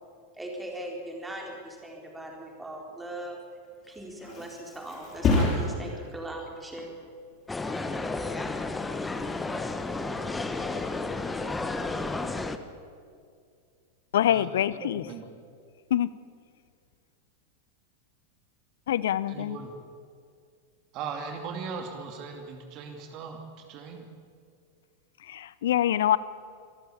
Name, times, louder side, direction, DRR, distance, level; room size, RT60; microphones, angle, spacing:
voice 1, 0.3-3.4 3.9-6.9, right 1 dB, 10° right, 0 dB, 4.4 m, -39 dB
Thump thud, 3.6-11.1 11.5-11.9, left 3 dB, 30° left, 7.0 m, -33 dB
sound 1, 7.5-12.6, left 3 dB, 10° left, 1.2 m, -32 dB
voice 2, 14.1-15.1 15.9-16.1 18.9-19.6 25.2-26.2, left 11 dB, 60° left, 18 dB, 0.7 m, -25 dB
voice 3, 14.8-15.2 19.3-19.7 20.9-24.1, right 5 dB, 40° right, 4 dB, 2.6 m, -38 dB
25.5 x 14.0 x 8.6 m, 2.3 s
figure-of-eight pair, 90°, 0 cm